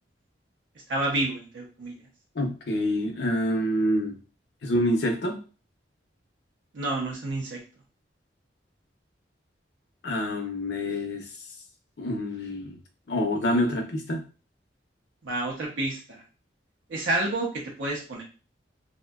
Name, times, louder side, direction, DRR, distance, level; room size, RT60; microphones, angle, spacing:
voice 1, 0.9-2.0 6.7-7.6 15.2-16.2 16.9-18.2, right 2 dB, 80° right, -2 dB, 0.5 m, -29 dB
voice 2, 2.4-4.2 4.6-5.4 10.0-11.3 12.0-12.8 13.1-14.2, left 1 dB, 60° left, 4 dB, 0.5 m, -26 dB
2.6 x 2.1 x 2.2 m, 0.35 s
head